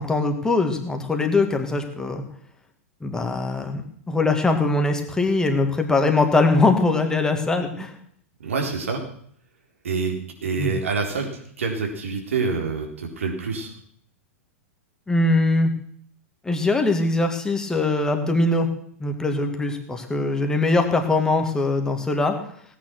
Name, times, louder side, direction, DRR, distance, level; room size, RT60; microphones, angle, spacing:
voice 1, 0.0-2.2 3.0-3.8 4.1-7.9 10.6-10.7 15.1-15.7 16.4-18.7 19.0-22.3, left 2 dB, 10° left, 4 dB, 2.3 m, -21 dB
voice 2, 8.4-9.0 9.8-13.7, right 4 dB, 70° right, 2 dB, 3.8 m, -27 dB
17.5 x 9.6 x 6.2 m, 0.62 s
figure-of-eight pair, 100°, 7 cm